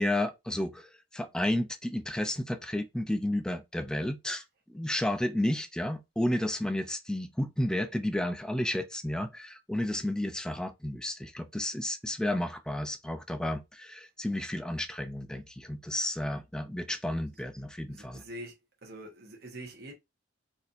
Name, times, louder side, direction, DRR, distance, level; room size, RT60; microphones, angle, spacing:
voice 1, 0.0-4.4 4.7-18.2, left 1 dB, 5° left, 0.3 m, -32 dB
voice 2, 17.9-18.6 18.8-19.9, right 1 dB, 50° right, 1.0 m, -44 dB
4.1 x 2.6 x 2.5 m
head